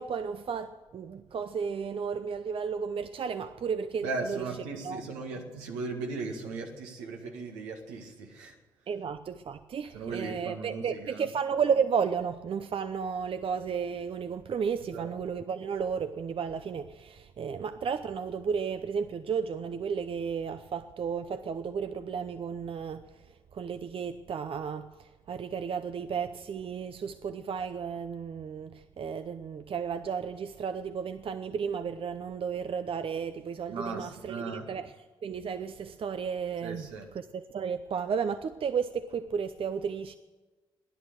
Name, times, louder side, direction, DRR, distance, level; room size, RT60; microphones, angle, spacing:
voice 1, 0.0-4.5 4.8-5.0 8.9-23.0 23.5-34.9 35.2-36.9 37.1-40.2, right 6 dB, 50° right, 0.7 m, -33 dB
voice 2, 4.0-8.6 9.9-11.2 14.9-15.1 33.7-34.7 36.6-37.1, right 3 dB, 85° right, 1.9 m, -37 dB
16.0 x 11.0 x 8.2 m
hypercardioid pair, 45°, 12 cm